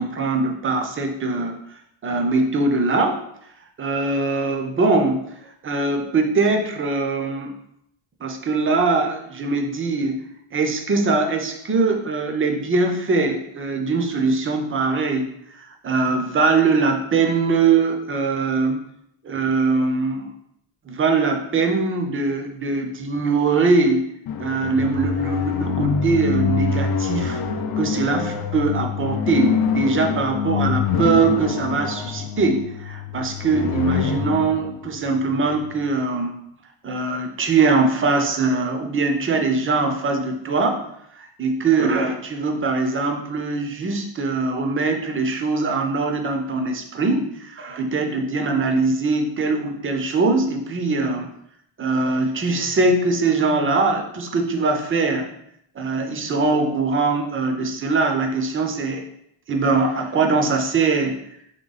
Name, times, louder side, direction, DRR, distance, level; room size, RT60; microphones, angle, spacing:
voice 1, 0.0-1.6 2.0-3.2 3.8-5.3 5.6-7.5 8.2-18.8 19.2-20.3 20.9-24.1 24.4-27.4 27.8-36.3 36.8-40.8 41.2-51.3 51.8-55.3 55.8-59.1 59.5-61.2, right 3 dB, 25° right, 4 dB, 0.5 m, -22 dB
sound 1, 24.3-35.9, left 6 dB, 50° left, 0.5 m, -25 dB
3.7 x 3.1 x 4.0 m, 0.74 s
cardioid pair, 150°, 49 cm